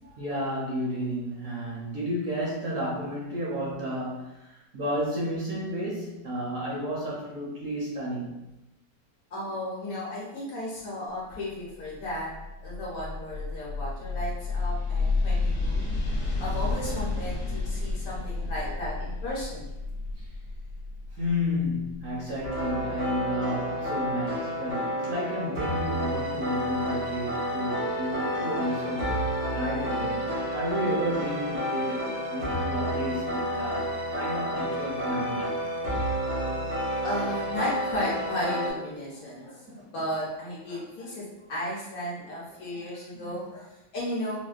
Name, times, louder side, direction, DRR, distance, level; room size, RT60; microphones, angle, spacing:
voice 1, 0.2-8.4 20.2-20.3 21.1-29.0 29.5-30.2 30.5-33.9 34.1-35.5 43.1-43.3, equal, 60° right, -5 dB, 1.0 m, -32 dB
voice 2, 9.3-12.3 12.6-15.9 16.4-19.7 37.0-44.4, equal, 60° left, -5 dB, 1.1 m, -34 dB
sound 1, 11.8-22.6, left 3 dB, 40° left, 0.8 m, -31 dB
sound 2, 22.4-38.7, equal, 85° right, 2.1 m, -30 dB
4.2 x 2.1 x 2.4 m, 0.95 s
omnidirectional pair, 1.9 m